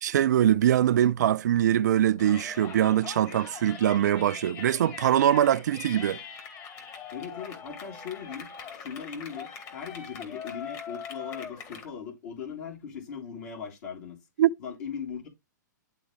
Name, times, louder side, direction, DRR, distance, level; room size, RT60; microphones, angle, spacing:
voice 1, 0.0-6.2 14.4-14.5, right 11 dB, 65° right, 0.4 m, -23 dB
Yell, 2.2-11.9, left 7 dB, 30° left, 2.2 m, -42 dB
voice 2, 7.1-8.5 8.8-14.2 14.6-15.3, left 6 dB, 55° left, 3.5 m, -39 dB
11.5 x 3.9 x 3.1 m
hypercardioid pair, 115°, 10 cm